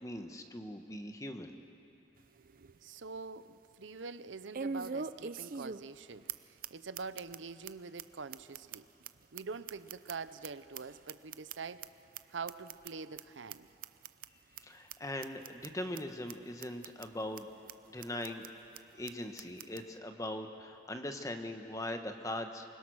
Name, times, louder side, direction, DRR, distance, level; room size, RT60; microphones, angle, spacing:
voice 1, 0.0-1.5 14.6-17.5 17.9-18.4 18.9-22.6, left 1 dB, 15° left, 6 dB, 1.1 m, -40 dB
sound 1, 2.2-2.3 2.7-2.8 4.5-6.0 6.3-6.4 6.6-6.7 6.9-7.4 7.6-7.7 8.0-8.1 8.3-10.5 10.7-11.9 12.1-12.2 12.5-12.9 13.2-13.3 13.5-13.6 13.8-14.3 14.6-14.7 14.9-15.0 15.2-15.7 15.9-16.0 16.3-16.4 16.6-17.1 17.4-17.5 17.7-17.8 18.0-18.5 18.7-18.8 19.1-19.2 19.4-19.8, right 5 dB, 45° right, 0.5 m, -41 dB
voice 2, 2.4-8.9 9.3-11.9 12.3-13.7, right 4 dB, 80° right, 13 dB, 0.7 m, -45 dB
27.5 x 21.0 x 6.3 m, 2.8 s
head